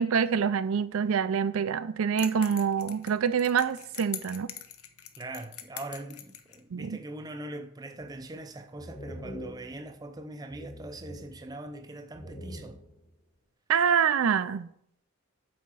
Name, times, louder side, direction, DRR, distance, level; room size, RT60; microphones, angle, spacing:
voice 1, 0.0-4.5 6.7-7.0 13.7-14.7, right 7 dB, 75° right, 0.4 m, -26 dB
sound 1, 2.2-6.6, left 10 dB, 85° left, 0.8 m, -43 dB
voice 2, 5.2-12.8, right 2 dB, 15° right, 0.5 m, -41 dB
sound 2, 8.0-8.4 8.8-10.2 10.5-11.8 12.1-13.1, equal, 35° left, 1.7 m, -45 dB
8.2 x 4.3 x 6.1 m
head